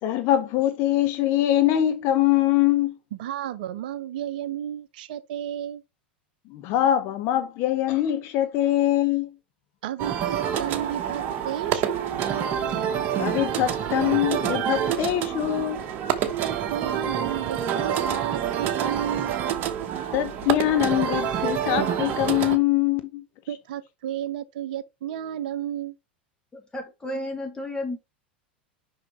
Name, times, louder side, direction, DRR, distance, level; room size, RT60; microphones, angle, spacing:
voice 1, 0.0-3.0 6.5-9.3 13.2-15.8 20.1-23.2, left 13 dB, 45° left, 0.8 m, -23 dB
voice 2, 3.1-5.8 9.8-12.3 16.4-19.4 23.5-25.9, right 10 dB, 55° right, 0.7 m, -33 dB
sound 1, 10.0-22.6, right 9 dB, 40° right, 1.1 m, -27 dB
voice 3, 26.5-28.0, left 1 dB, 15° left, 1.8 m, -32 dB
6.0 x 5.6 x 3.2 m
figure-of-eight pair, 85°, 6 cm